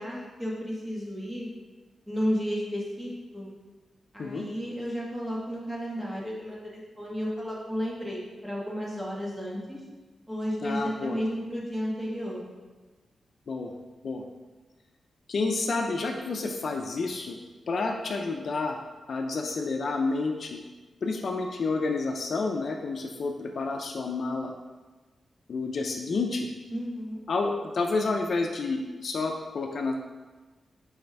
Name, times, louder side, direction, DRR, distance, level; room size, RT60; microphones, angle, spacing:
voice 1, 0.0-1.5 2.1-3.5 4.1-9.8 10.3-12.5 26.7-27.2, equal, 10° right, -5 dB, 1.5 m, -33 dB
voice 2, 10.6-11.2 13.5-13.7 14.0-14.2 15.3-17.4 17.7-18.8 19.1-20.6 21.0-24.5 25.5-26.5 27.3-29.9, left 3 dB, 55° left, 3 dB, 0.5 m, -29 dB
5.5 x 4.2 x 4.6 m, 1.3 s
wide cardioid pair, 120°, 0 cm